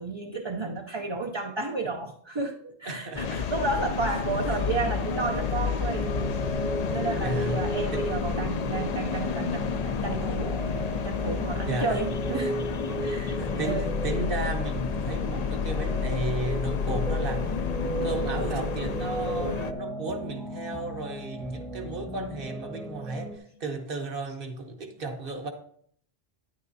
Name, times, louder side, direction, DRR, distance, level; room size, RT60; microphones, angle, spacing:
voice 1, 0.0-6.1 6.8-10.6 11.0-12.6 12.9-13.9, right 3 dB, 35° right, 2 dB, 0.5 m, -32 dB
voice 2, 2.8-3.5 4.5-4.6 7.2-7.6 7.9-8.0 11.7-12.0 13.1-25.5, right 2 dB, 60° right, 5 dB, 1.3 m, -34 dB
sound 1, 3.2-19.7, left 6 dB, 50° left, 0.5 m, -30 dB
sound 2, 4.8-23.4, right 1 dB, ahead, 0.9 m, -36 dB
9.9 x 8.9 x 2.7 m, 0.63 s
omnidirectional pair, 1.0 m